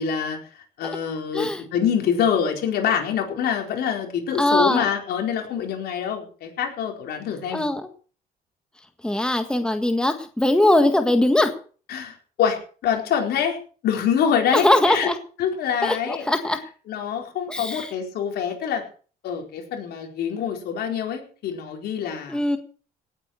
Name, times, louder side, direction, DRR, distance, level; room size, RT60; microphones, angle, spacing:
voice 1, 0.0-7.6 11.9-13.6 13.8-15.1 15.4-16.3 16.9-18.8 19.2-22.4, left 8 dB, 70° left, 3 dB, 4.5 m, -25 dB
voice 2, 4.4-4.9 7.5-7.9 9.0-11.5 14.5-15.2 15.8-16.6 17.5-17.9 22.3-22.6, left 1 dB, 5° left, 7 dB, 1.7 m, -21 dB
18.0 x 8.9 x 6.4 m, 0.41 s
cardioid pair, 110°, 17 cm